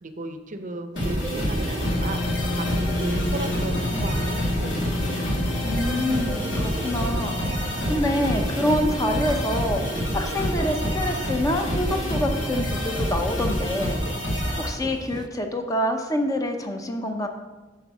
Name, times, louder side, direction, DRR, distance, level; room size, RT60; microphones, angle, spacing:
voice 1, 0.0-5.4, right 2 dB, 45° right, 8 dB, 0.7 m, -36 dB
sound 1, 0.9-15.3, right 2 dB, 20° right, 0.3 m, -38 dB
sound 2, 1.0-14.7, equal, 75° left, 2.0 m, -27 dB
sound 3, 1.8-10.9, left 3 dB, 60° left, 0.4 m, -33 dB
voice 2, 5.6-7.4 7.9-14.0 14.6-17.3, left 1 dB, 20° left, 4 dB, 0.8 m, -26 dB
9.3 x 4.6 x 6.0 m, 1.2 s
head